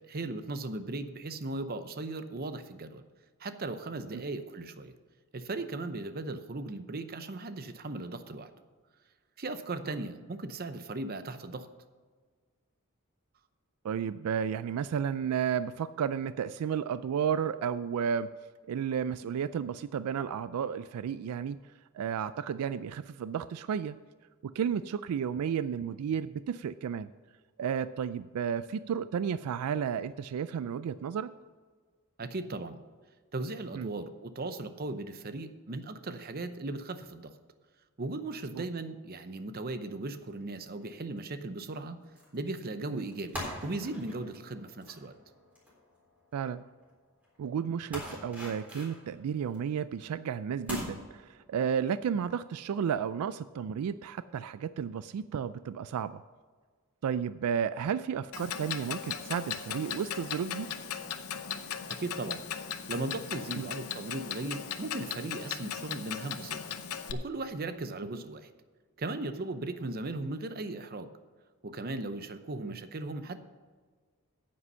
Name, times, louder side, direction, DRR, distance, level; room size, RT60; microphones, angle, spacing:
voice 1, 0.1-3.0 3.4-4.9 5.3-8.5 9.4-11.7 32.2-32.8 33.3-37.3 38.0-42.0 42.3-45.1 61.9-62.4 62.9-66.8 67.1-68.5 69.0-71.1 71.6-73.4, right 2 dB, 45° right, 10 dB, 0.7 m, -37 dB
voice 2, 13.8-18.3 18.7-21.6 21.9-24.0 24.4-27.1 27.6-31.3 33.7-33.9 38.5-38.6 42.9-43.1 46.3-46.6 47.4-56.2 57.0-60.7 63.6-63.7 72.6-72.7, right 7 dB, 80° right, 15 dB, 0.3 m, -32 dB
sound 1, 40.2-40.4 40.9-41.2 42.2-42.4 42.6-46.5 46.8-46.9 47.2-47.4 47.9-49.7 50.1-50.2 50.7-50.8, left 1 dB, 5° right, 3.6 m, -42 dB
Clock, 58.3-67.1, left 8 dB, 75° left, 0.7 m, -38 dB
9.5 x 8.6 x 5.5 m, 1.5 s
head